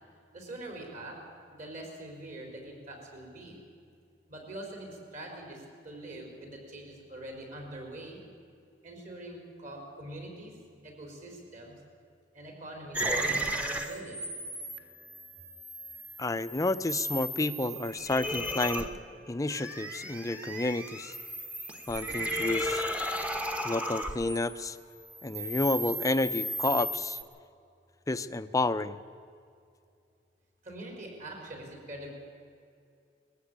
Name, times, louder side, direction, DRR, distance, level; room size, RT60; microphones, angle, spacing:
voice 1, 0.3-1.2 1.5-3.6 4.3-8.2 8.8-10.5 10.8-11.7 12.3-14.3 30.6-32.1, right 1 dB, 45° right, 2 dB, 4.8 m, -44 dB
sound 1, 12.9-24.7 25.0-27.2, equal, 10° right, 1.0 m, -35 dB
voice 2, 16.2-18.9 19.3-21.1 21.9-22.8 23.6-24.8 25.2-27.2 28.1-29.0, left 2 dB, 20° left, 12 dB, 0.5 m, -30 dB
21.0 x 14.5 x 8.7 m, 2.4 s
head